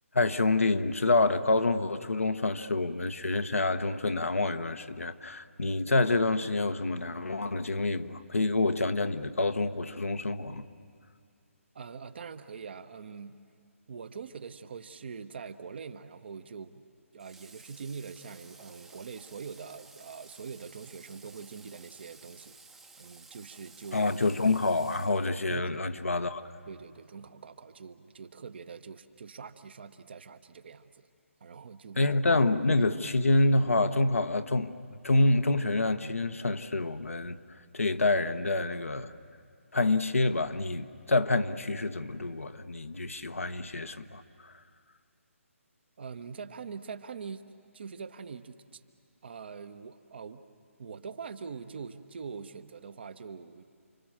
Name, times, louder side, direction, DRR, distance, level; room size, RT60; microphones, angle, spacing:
voice 1, 0.1-10.6 23.9-26.4 32.0-34.7 35.0-37.4 37.7-39.1 39.7-44.5, left 2 dB, 70° left, 1.3 m, -27 dB
voice 2, 11.7-13.4 13.9-16.8 17.1-22.6 23.0-24.1 25.5-25.8 26.7-31.1 31.4-32.1 32.8-32.9 46.0-47.4 47.7-48.8 49.2-50.5 50.8-53.6, right 5 dB, 45° right, 1.2 m, -43 dB
Water / Water tap faucet, 17.2-25.7, right 3 dB, 5° right, 0.9 m, -54 dB
30.0 x 24.5 x 7.4 m
figure-of-eight pair, 140°, 8 cm